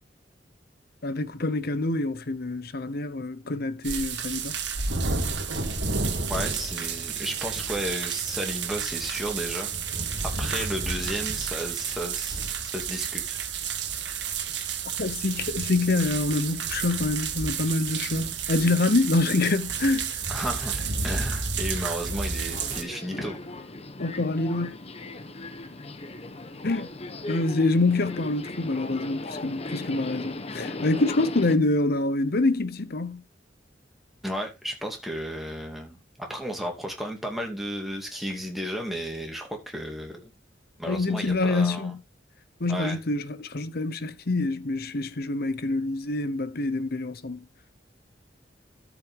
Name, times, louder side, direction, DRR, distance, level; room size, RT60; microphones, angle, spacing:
voice 1, 1.0-4.6 15.0-20.2 24.0-24.7 26.6-26.9 27.3-33.2 40.9-42.0 42.6-47.4, left 2 dB, 60° left, 0.9 m, -26 dB
sound 1, 3.8-22.8, right 5 dB, 75° right, 1.9 m, -31 dB
voice 2, 6.3-9.7 10.4-13.4 20.3-23.4 34.2-40.3 40.8-41.9 42.7-43.0, equal, ahead, 2.6 m, -33 dB
Subway metro underground, 22.5-31.5, left 2 dB, 35° left, 1.0 m, -37 dB
13.0 x 6.2 x 3.8 m
head